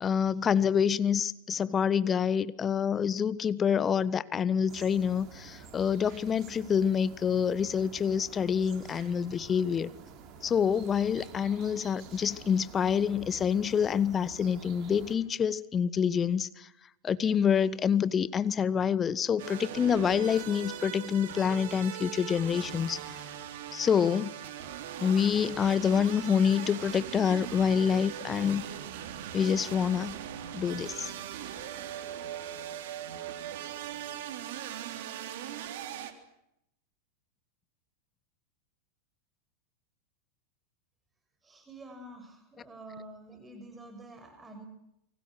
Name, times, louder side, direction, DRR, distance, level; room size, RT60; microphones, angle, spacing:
voice 1, 0.0-9.9 10.4-16.5 17.0-23.0 23.7-24.3 25.0-28.6 29.3-30.2 30.5-31.1, left 7 dB, 20° left, 18 dB, 1.2 m, -27 dB
sound 1, 4.7-15.2, right 6 dB, 35° right, 6.2 m, -49 dB
sound 2, 19.4-36.1, right 10 dB, 50° right, 3.4 m, -40 dB
voice 2, 41.4-44.7, right 1 dB, 15° right, 6 dB, 6.5 m, -48 dB
30.0 x 24.5 x 6.3 m, 0.80 s
figure-of-eight pair, 90°, 0 cm